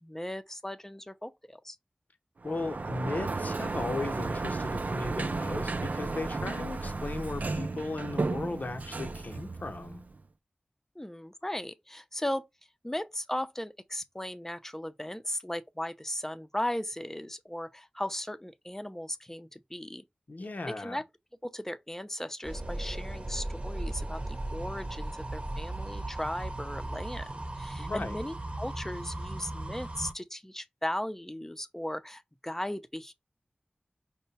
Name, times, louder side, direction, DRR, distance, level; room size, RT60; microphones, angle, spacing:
voice 1, 0.0-1.8 11.0-12.4 12.8-20.0 20.7-21.0 21.4-33.1, left 1 dB, 15° left, 0.6 m, -37 dB
voice 2, 2.4-10.0 20.3-21.0 27.8-28.2, left 2 dB, 70° left, 0.8 m, -36 dB
Sliding door, 2.4-10.2, right 3 dB, 65° right, 0.4 m, -34 dB
sound 1, 22.4-30.1, right 1 dB, 40° right, 0.8 m, -37 dB
5.5 x 2.2 x 4.0 m
wide cardioid pair, 50°, 3 cm